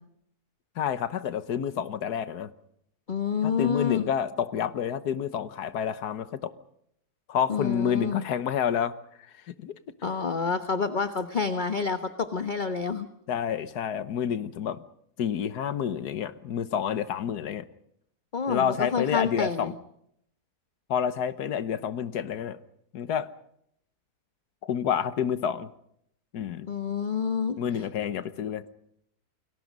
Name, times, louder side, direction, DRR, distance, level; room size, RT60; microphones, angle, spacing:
voice 1, 0.8-2.5 3.4-6.5 7.3-9.0 9.5-9.7 13.3-14.8 15.2-17.6 18.5-19.7 20.9-22.6 22.9-23.3 24.6-25.7 26.3-26.7 27.6-28.6, left 8 dB, 80° left, 13 dB, 1.6 m, -29 dB
voice 2, 3.1-4.1 7.5-8.3 10.0-13.1 18.3-19.8 26.7-27.6, left 5 dB, 35° left, 9 dB, 1.2 m, -28 dB
29.5 x 22.5 x 5.4 m, 0.73 s
omnidirectional pair, 1.7 m